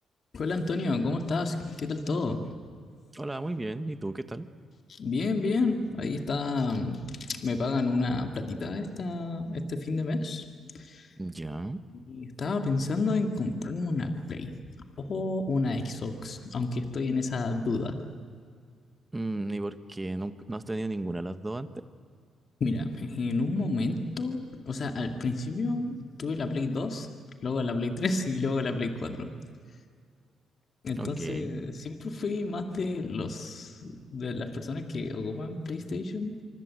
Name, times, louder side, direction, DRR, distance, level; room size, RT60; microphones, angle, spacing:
voice 1, 0.3-2.5 4.9-10.5 10.7-11.1 12.1-14.6 15.0-18.0 22.6-27.1 27.4-29.3 30.8-36.4, left 3 dB, 45° left, 4 dB, 2.3 m, -30 dB
voice 2, 3.1-4.5 11.2-11.8 19.1-21.8 31.0-31.6, right 2 dB, 15° right, 10 dB, 1.3 m, -34 dB
25.0 x 24.5 x 7.7 m, 2.1 s
cardioid pair, 90°, 0 cm